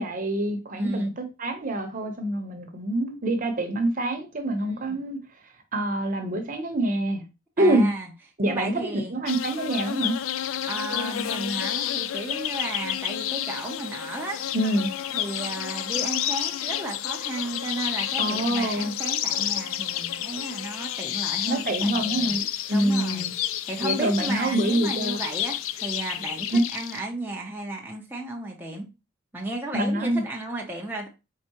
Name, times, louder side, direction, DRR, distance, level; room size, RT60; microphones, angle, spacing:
voice 1, 0.0-5.2 5.7-7.2 7.6-7.9 8.4-10.1 14.5-14.9 18.2-18.9 21.5-22.4 22.7-23.3 23.8-25.2 26.5-26.6 29.7-30.2, right 1 dB, 40° right, 0.9 m, -25 dB
voice 2, 0.8-1.1 4.6-5.0 7.6-8.1 8.4-9.1 10.7-14.5 15.1-22.4 22.7-23.2 23.7-28.9 29.3-31.1, right 2 dB, 10° right, 0.6 m, -34 dB
sound 1, 9.3-27.0, left 11 dB, 80° left, 0.4 m, -30 dB
4.6 x 3.6 x 2.9 m
head